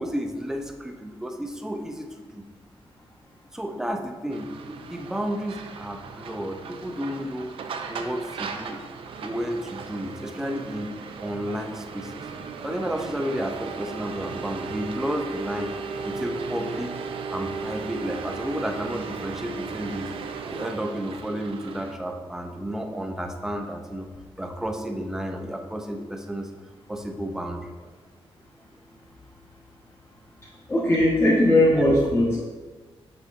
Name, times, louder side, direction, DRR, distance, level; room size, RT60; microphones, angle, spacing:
voice 1, 0.0-2.4 3.5-7.5 7.9-8.8 9.2-10.9 11.2-12.2 12.6-15.7 16.0-17.0 17.3-20.1 20.5-24.1 24.4-26.5 26.9-27.6 31.8-31.9, equal, 5° right, 4 dB, 0.5 m, -32 dB
sound 1, 4.3-21.9, right 5 dB, 65° right, 0.5 m, -36 dB
voice 2, 30.7-32.4, left 1 dB, 25° left, -8 dB, 1.3 m, -19 dB
7.1 x 6.3 x 2.5 m, 1.4 s
wide cardioid pair, 175°, 10 cm